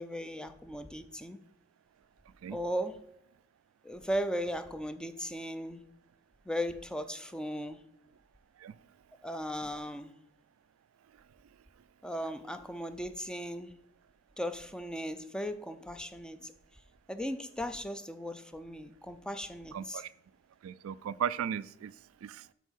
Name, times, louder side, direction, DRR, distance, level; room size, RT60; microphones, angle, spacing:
voice 1, 0.0-1.4 2.5-3.0 3.8-5.8 6.5-7.8 9.2-10.1 12.0-13.7 14.4-16.5 17.1-20.0, equal, 5° left, 10 dB, 0.5 m, -37 dB
voice 2, 19.7-20.1 20.6-21.9 22.2-22.4, right 8 dB, 75° right, 17 dB, 0.3 m, -36 dB
8.2 x 4.1 x 6.3 m, 0.78 s
head